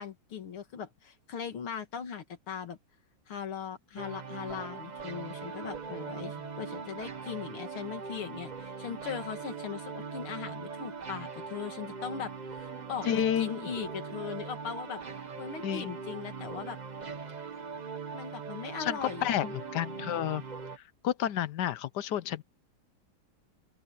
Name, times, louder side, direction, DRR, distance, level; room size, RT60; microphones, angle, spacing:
voice 1, 0.0-2.8 3.3-13.1 13.4-15.0 15.4-16.8 18.1-19.4, left 7 dB, 85° left, 2.8 m, -39 dB
sound 1, 4.0-20.8, right 5 dB, 35° right, 0.7 m, -41 dB
Bass guitar, 12.7-18.9, right 8 dB, 90° right, 8.2 m, -61 dB
voice 2, 13.0-13.7 15.6-16.0 18.8-20.4 20.8-22.4, left 10 dB, 65° left, 1.1 m, -31 dB
open air
omnidirectional pair, 2.3 m